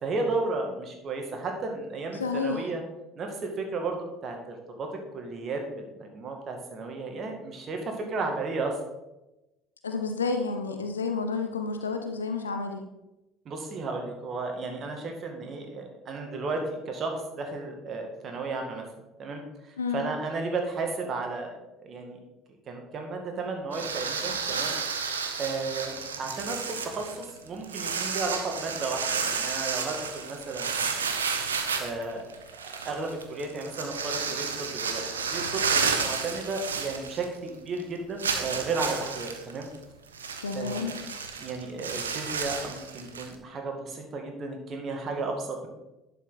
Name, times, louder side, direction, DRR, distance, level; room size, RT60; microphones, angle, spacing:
voice 1, 0.0-2.8 3.2-8.8 13.5-18.8 19.2-19.4 19.9-21.5 21.8-22.2 22.7-24.7 25.4-31.0 31.8-32.2 32.7-39.7 40.5-41.0 41.4-45.7, right 3 dB, 45° right, 3 dB, 2.1 m, -33 dB
voice 2, 2.1-2.6 9.8-12.8 19.8-20.0 40.4-41.0, left 4 dB, 85° left, 6 dB, 0.7 m, -30 dB
sound 1, 23.7-37.5 37.8-37.9 38.2-43.4, right 5 dB, 85° right, 0.7 m, -31 dB
11.0 x 5.6 x 4.1 m, 0.97 s
hypercardioid pair, 60°, 0 cm